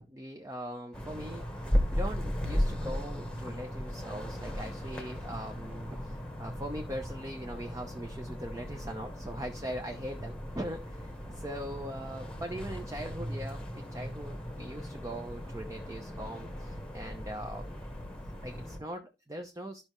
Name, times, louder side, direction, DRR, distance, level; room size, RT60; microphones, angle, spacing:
voice 1, 0.0-1.4 1.9-17.8 18.4-19.8, equal, 20° right, 4 dB, 0.7 m, -41 dB
sound 1, 0.9-18.8, equal, 5° left, 1.2 m, -36 dB
12.5 x 5.4 x 3.0 m, 0.27 s
head